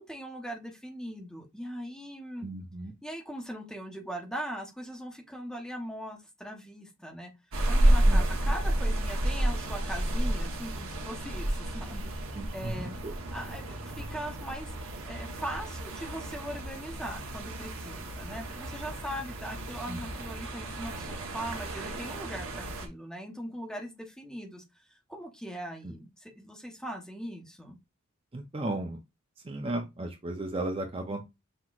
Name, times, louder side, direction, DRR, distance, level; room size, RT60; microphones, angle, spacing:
voice 1, 0.0-2.5 3.0-7.3 7.7-13.0 13.3-27.8, equal, 5° left, 0.9 m, -40 dB
voice 2, 2.4-2.9 8.1-8.3 12.4-13.1 19.9-20.0 28.3-29.0 29.4-31.2, right 2 dB, 25° right, 0.6 m, -35 dB
sound 1, 7.5-22.9, right 1 dB, 80° right, 1.0 m, -31 dB
5.8 x 3.0 x 2.4 m
head